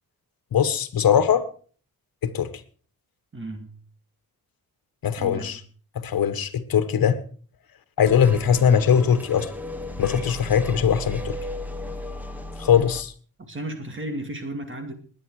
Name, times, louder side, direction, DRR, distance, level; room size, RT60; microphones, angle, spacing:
voice 1, 0.5-1.4 2.2-2.5 5.0-5.6 5.9-7.2 8.0-9.5 10.0-11.4 12.6-13.1, left 8 dB, 75° left, 1.5 m, -20 dB
voice 2, 3.3-3.8 5.2-5.6 13.4-14.9, right 1 dB, 35° right, 2.4 m, -34 dB
sound 1, 8.0-13.0, left 1 dB, 5° right, 1.8 m, -35 dB
20.5 x 10.0 x 4.9 m
wide cardioid pair, 125°, 36 cm